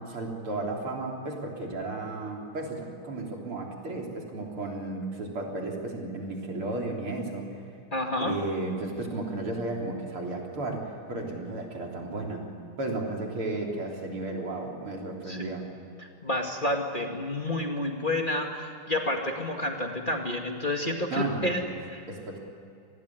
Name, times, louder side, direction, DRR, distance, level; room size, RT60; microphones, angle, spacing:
voice 1, 0.0-7.5 8.2-12.5 12.8-15.7 21.1-21.7 22.1-22.4, right 2 dB, 85° right, 0 dB, 4.6 m, -34 dB
voice 2, 7.9-8.3 15.3-15.4 16.2-21.6 21.9-22.0, left 1 dB, 25° left, 2 dB, 2.2 m, -29 dB
27.0 x 19.5 x 9.8 m, 2.5 s
omnidirectional pair, 2.3 m